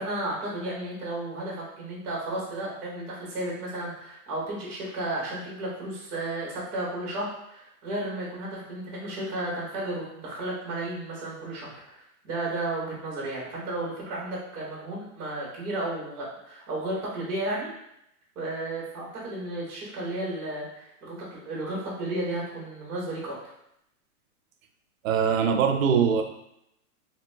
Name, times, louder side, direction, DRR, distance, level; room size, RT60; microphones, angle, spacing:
voice 1, 0.0-17.7 18.4-23.5, right 1 dB, 25° right, -4 dB, 0.8 m, -33 dB
voice 2, 25.0-26.2, right 7 dB, 65° right, 6 dB, 0.5 m, -22 dB
2.6 x 2.2 x 3.1 m, 0.79 s
hypercardioid pair, 155°, 44 cm